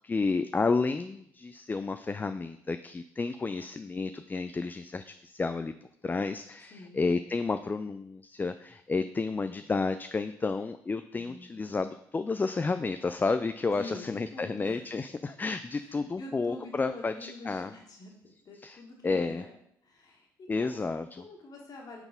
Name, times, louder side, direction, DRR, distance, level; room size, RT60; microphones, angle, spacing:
voice 1, 0.0-5.7 6.0-17.7 18.6-19.4 20.5-21.2, left 4 dB, 25° left, 9 dB, 0.4 m, -31 dB
voice 2, 6.7-7.0 11.2-11.8 13.7-14.9 15.8-19.6 19.8-20.8 21.2-22.0, left 3 dB, 55° left, 0 dB, 2.0 m, -46 dB
7.1 x 4.0 x 5.2 m, 0.72 s
supercardioid pair, 65°, 8 cm